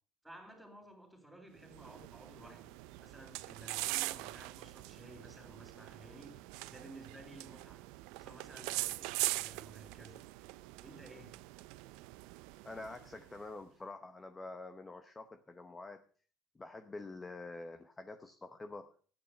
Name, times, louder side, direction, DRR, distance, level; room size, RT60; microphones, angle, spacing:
voice 1, 0.2-7.9 8.2-10.2 10.8-11.5, right 2 dB, 5° right, 3.9 m, -54 dB
sound 1, 1.6-13.4, right 20 dB, 85° right, 0.5 m, -42 dB
voice 2, 12.6-16.0 16.5-18.9, left 2 dB, 15° left, 0.9 m, -47 dB
13.5 x 8.8 x 6.5 m
cardioid pair, 145°, 0 cm